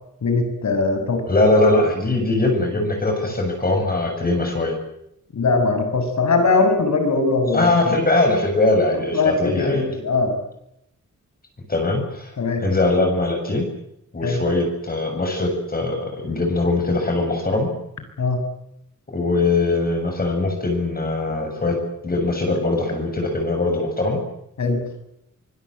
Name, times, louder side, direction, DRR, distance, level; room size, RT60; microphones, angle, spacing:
voice 1, 0.2-1.3 1.6-1.7 5.3-8.0 8.9-10.4 12.4-12.6 14.2-14.4 18.2-18.4 24.6-24.8, left 3 dB, 65° left, 7 dB, 7.0 m, -21 dB
voice 2, 1.3-4.7 7.5-9.9 11.7-12.3 12.6-13.7 14.1-17.7 19.1-21.8 22.0-24.2, left 2 dB, 30° left, 2 dB, 7.2 m, -21 dB
25.0 x 22.5 x 7.9 m, 0.81 s
wide cardioid pair, 160°, 31 cm